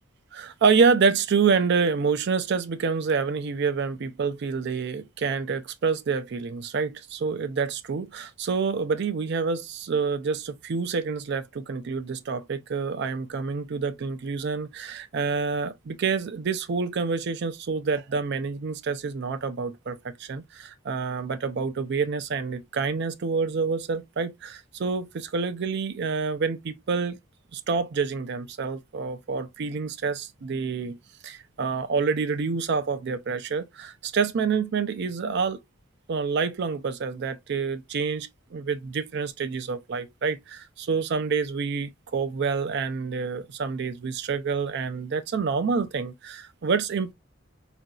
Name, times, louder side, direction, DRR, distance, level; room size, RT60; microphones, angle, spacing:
voice 1, 0.3-27.2 27.5-31.0 31.2-35.6 36.1-47.1, right 5 dB, 55° right, 0.4 m, -27 dB
3.9 x 2.5 x 2.2 m
head